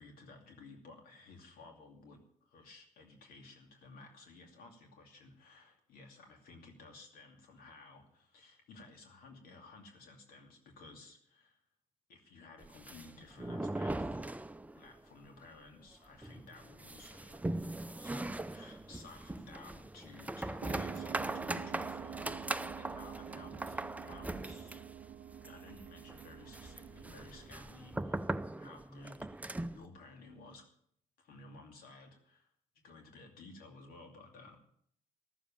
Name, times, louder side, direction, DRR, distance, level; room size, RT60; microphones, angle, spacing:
voice 1, 0.0-11.6 12.1-14.2 14.7-22.4 22.8-24.8 25.4-29.2 29.7-30.6 31.2-32.5 32.8-34.6, left 3 dB, 90° left, 3 dB, 2.6 m, -55 dB
sound 1, 12.6-15.0 15.2-15.3 15.7-15.8 16.2-29.8, right 2 dB, 10° right, 0.6 m, -40 dB
sound 2, 20.6-28.7, right 10 dB, 75° right, 0.6 m, -48 dB
13.5 x 7.3 x 8.9 m, 0.67 s
cardioid pair, 75°, 15 cm